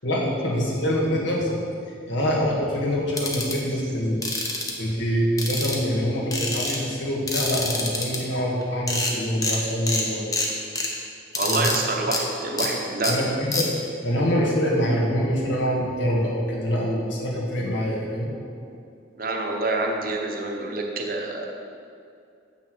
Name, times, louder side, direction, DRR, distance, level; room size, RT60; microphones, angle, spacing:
voice 1, 0.0-4.2 4.8-10.3 11.4-11.7 13.0-18.3, equal, 70° left, -3 dB, 1.8 m, -25 dB
sound 1, 3.2-3.5 4.2-4.7 5.4-6.0 6.3-6.8 7.3-8.2 8.6-8.7 8.9-9.1 9.4-9.6 9.9-10.0 10.3-10.9 11.3-11.8 12.1-12.2 12.6-12.7 13.0-13.1 13.5-13.6, left 2 dB, 20° left, 0.9 m, -26 dB
voice 2, 11.4-13.1 19.2-21.5, right 2 dB, 45° right, 0 dB, 1.0 m, -27 dB
7.7 x 5.9 x 6.2 m, 2.4 s
head